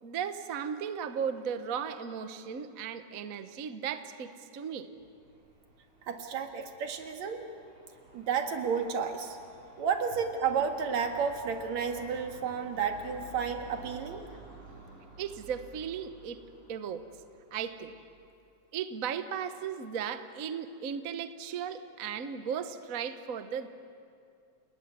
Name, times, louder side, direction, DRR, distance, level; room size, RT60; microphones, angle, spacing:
voice 1, 0.0-4.9 15.2-16.4 16.7-17.0 17.5-17.9 18.7-23.7, right 7 dB, 85° right, 9 dB, 0.7 m, -36 dB
sound 1, 4.9-18.3, right 1 dB, 50° right, 6.6 m, -53 dB
voice 2, 6.0-7.4 8.1-9.4 9.8-14.3, right 6 dB, 70° right, 5 dB, 3.0 m, -31 dB
29.5 x 19.0 x 9.6 m, 2.4 s
omnidirectional pair, 3.4 m